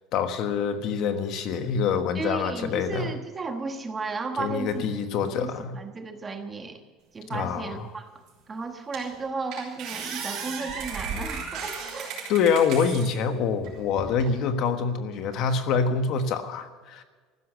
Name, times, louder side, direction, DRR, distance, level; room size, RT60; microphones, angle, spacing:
voice 1, 0.1-3.1 4.4-5.8 7.3-7.9 12.3-17.0, left 6 dB, 45° left, 8 dB, 1.3 m, -26 dB
voice 2, 2.1-4.9 5.2-6.8 7.1-8.1 8.5-12.1, right 4 dB, 15° right, 5 dB, 1.2 m, -34 dB
sound 1, 8.3-8.4 8.9-9.2 9.5-13.1 13.6-14.3, right 5 dB, 45° right, 6.1 m, -35 dB
15.0 x 12.5 x 6.6 m, 1.4 s
cardioid pair, 175°, 0 cm